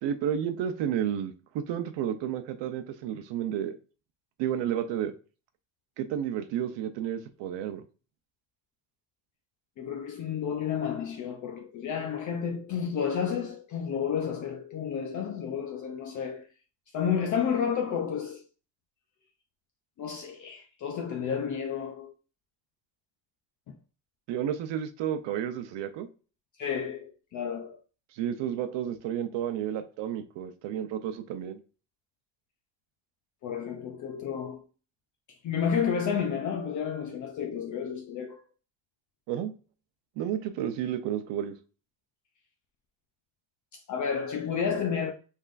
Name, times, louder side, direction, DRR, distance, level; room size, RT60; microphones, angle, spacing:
voice 1, 0.0-3.8 4.4-5.1 6.0-7.8 24.3-26.1 28.1-31.6 39.3-39.5 40.2-41.5, right 9 dB, 75° right, 0.8 m, -31 dB
voice 2, 9.8-16.5 16.9-18.4 20.0-22.1 23.7-23.8 26.6-27.8 33.4-34.6 35.4-38.4 43.7-45.1, left 7 dB, 45° left, 0.6 m, -31 dB
5.6 x 3.6 x 2.5 m
cardioid pair, 180°, 44 cm